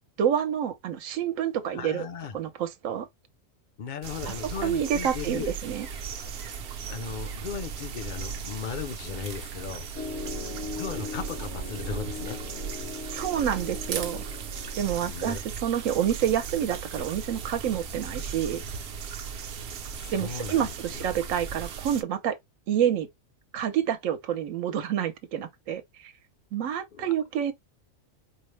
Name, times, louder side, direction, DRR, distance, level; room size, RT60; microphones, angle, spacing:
voice 1, 0.2-2.1 2.3-3.1 4.3-4.4 4.6-5.9 13.1-14.2 14.8-18.6 20.1-22.4 22.7-23.1 23.5-26.1 26.5-27.5, right 9 dB, 80° right, 1.1 m, -28 dB
voice 2, 1.7-2.4 3.8-5.5 6.9-9.9 10.7-12.4 15.0-15.4 19.9-21.1 26.9-27.1, left 7 dB, 50° left, 0.6 m, -36 dB
sound 1, 4.0-22.0, right 6 dB, 60° right, 0.8 m, -37 dB
Piano, 10.0-14.9, left 4 dB, 70° left, 1.3 m, -39 dB
4.4 x 2.0 x 3.1 m
omnidirectional pair, 1.4 m